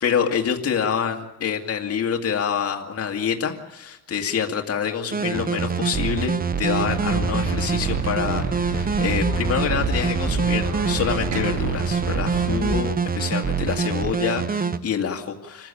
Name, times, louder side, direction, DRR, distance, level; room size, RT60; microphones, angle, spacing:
voice 1, 0.0-15.7, left 7 dB, 50° left, 2 dB, 2.1 m, -26 dB
sound 1, 5.1-14.8, right 5 dB, 30° right, 1.0 m, -25 dB
sound 2, 6.7-12.8, right 2 dB, 75° right, 7.3 m, -29 dB
26.5 x 15.0 x 8.6 m, 0.94 s
cardioid pair, 90°, 30 cm